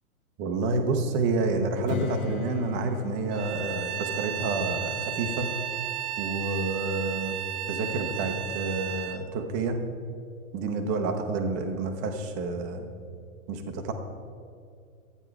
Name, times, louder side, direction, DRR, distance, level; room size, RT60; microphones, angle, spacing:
voice 1, 0.4-5.5 6.2-7.4 7.7-9.8 10.5-12.9 13.5-13.9, right 3 dB, 20° right, 5 dB, 0.6 m, -29 dB
Strum, 1.9-7.1, left 7 dB, 70° left, 1.0 m, -40 dB
Bowed string instrument, 3.3-9.2, right 11 dB, 90° right, 1.3 m, -34 dB
12.0 x 9.0 x 4.6 m, 2.3 s
hypercardioid pair, 150°, 44 cm